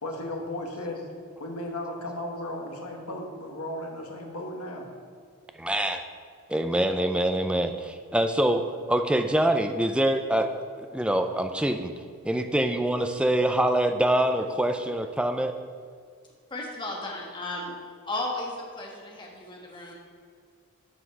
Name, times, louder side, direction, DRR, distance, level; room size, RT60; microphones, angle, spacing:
voice 1, 0.0-1.0 1.4-4.9, left 1 dB, 85° left, 2 dB, 1.4 m, -35 dB
voice 2, 5.6-6.0 6.5-10.5 10.9-11.9 12.2-15.6, right 1 dB, 5° right, 6 dB, 0.4 m, -25 dB
voice 3, 16.5-17.7 18.0-19.9, left 2 dB, 20° left, -1 dB, 1.4 m, -34 dB
7.9 x 5.7 x 6.4 m, 2.1 s
head